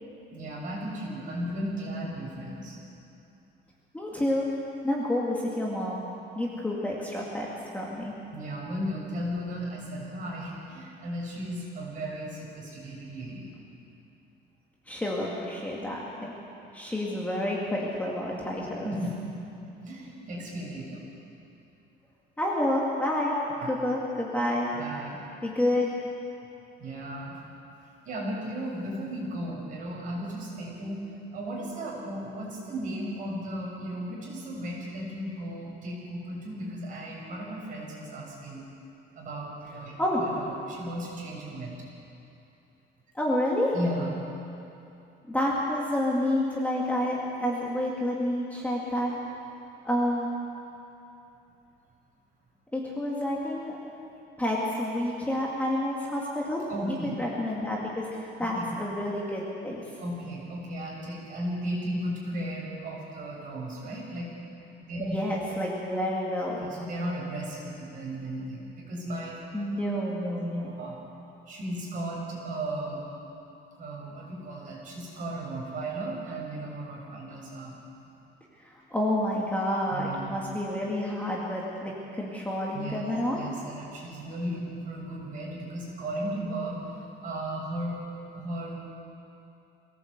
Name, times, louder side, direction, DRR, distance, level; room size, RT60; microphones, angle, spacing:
voice 1, 0.3-2.8 8.3-13.5 18.8-19.2 19.8-21.1 23.6-23.7 24.7-25.2 26.8-27.4 28.0-31.0 31.3-38.6 39.1-39.9 40.2-41.7 43.7-44.2 56.7-57.1 58.5-58.8 60.0-64.3 64.8-65.1 66.6-69.4 70.2-70.4 70.6-71.0 71.5-73.0 73.8-78.0 79.9-80.4 82.7-83.0 83.3-86.8 87.2-88.0 88.3-88.8, right 1 dB, 45° right, -3 dB, 6.6 m, -35 dB
voice 2, 3.9-4.5 4.8-6.0 6.4-7.5 7.7-8.1 14.9-16.3 16.7-18.9 22.4-23.4 23.7-24.7 25.4-25.9 40.0-40.3 43.1-43.7 45.3-49.1 49.8-50.3 52.7-53.8 54.4-56.6 57.0-59.8 65.0-66.7 69.5-70.7 78.6-83.4, left 1 dB, 10° left, -4 dB, 2.2 m, -29 dB
23.0 x 17.5 x 8.1 m, 2.8 s
cardioid pair, 180°, 20 cm